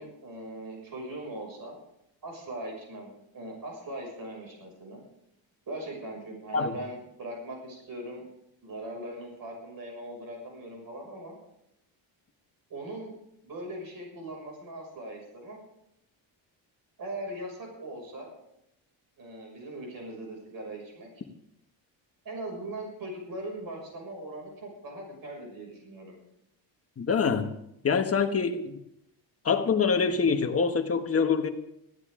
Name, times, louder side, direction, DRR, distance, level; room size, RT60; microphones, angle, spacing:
voice 1, 0.0-1.8 2.2-5.0 5.7-8.3 8.6-11.4 12.7-13.1 13.4-15.6 17.0-18.3 19.2-21.2 22.2-26.1, right 1 dB, 45° right, 6.4 m, -40 dB
voice 2, 27.0-27.5 27.8-28.8 29.4-31.5, left 5 dB, 30° left, 1.3 m, -25 dB
20.5 x 15.0 x 3.8 m
cardioid pair, 155°, 47 cm